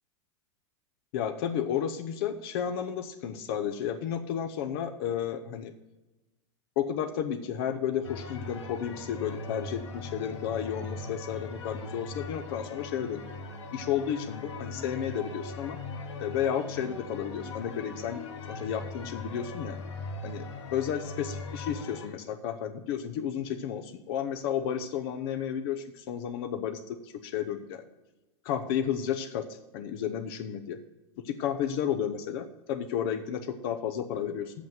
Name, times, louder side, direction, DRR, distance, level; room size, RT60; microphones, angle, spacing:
voice 1, 1.1-5.7 6.8-13.2 13.7-15.8 16.2-18.2 18.5-19.8 20.2-20.5 20.7-27.8 28.4-30.8 31.2-34.7, left 9 dB, 55° left, 7 dB, 0.8 m, -32 dB
sound 1, 8.0-22.1, left 3 dB, 90° left, 1.5 m, -40 dB
8.3 x 5.9 x 7.7 m, 1.1 s
hypercardioid pair, 125°, 15 cm